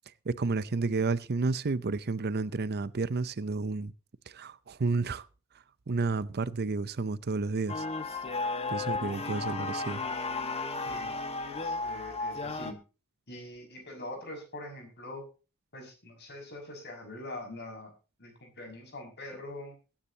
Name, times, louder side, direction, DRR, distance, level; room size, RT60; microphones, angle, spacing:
voice 1, 0.3-3.9 4.3-5.3 5.9-7.8 8.7-10.0, right 3 dB, 45° right, 0.6 m, -31 dB
sound 1, 7.7-12.7, left 3 dB, 30° left, 1.5 m, -34 dB
voice 2, 11.5-12.8 13.3-15.2 15.7-17.9 18.2-19.7, left 1 dB, 50° left, 6.0 m, -43 dB
22.0 x 10.0 x 2.8 m
head